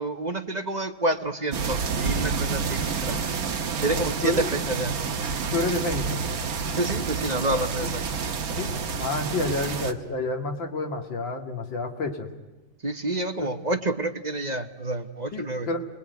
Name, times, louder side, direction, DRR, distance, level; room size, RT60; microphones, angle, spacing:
voice 1, 0.0-3.3 3.8-5.0 6.8-8.0 12.8-15.7, right 2 dB, 25° right, 6 dB, 1.1 m, -28 dB
sound 1, 1.5-9.9, right 5 dB, 55° right, 1.6 m, -29 dB
voice 2, 3.9-4.5 5.5-6.2 7.8-7.9 8.6-8.7 9.0-12.3 13.4-13.5 15.3-15.9, left 3 dB, 90° left, 4 dB, 3.0 m, -29 dB
29.5 x 20.5 x 9.4 m, 1.2 s
omnidirectional pair, 2.0 m